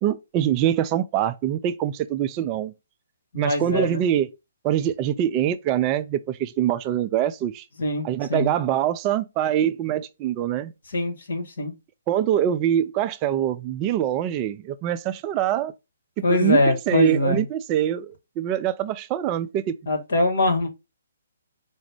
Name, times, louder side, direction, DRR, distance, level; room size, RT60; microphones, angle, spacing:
voice 1, 0.0-2.7 3.3-4.3 4.6-7.7 8.0-10.7 12.1-15.7 16.3-19.8, right 11 dB, 25° right, 0.3 m, -24 dB
voice 2, 3.3-4.0 7.8-8.5 10.9-11.7 16.2-17.4 19.9-20.7, left 2 dB, 60° left, 1.3 m, -23 dB
4.8 x 2.1 x 4.6 m
figure-of-eight pair, 135°, 0 cm